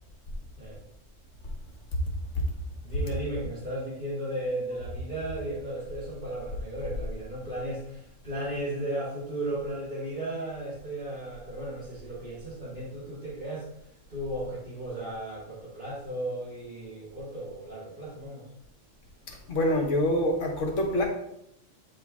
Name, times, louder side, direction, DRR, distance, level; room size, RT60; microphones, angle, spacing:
voice 1, 2.8-13.7 14.1-18.5, right 1 dB, 35° right, -12 dB, 2.2 m, -35 dB
voice 2, 19.3-21.0, left 1 dB, 75° left, 1 dB, 1.5 m, -26 dB
8.7 x 3.3 x 3.5 m, 0.79 s
omnidirectional pair, 1.3 m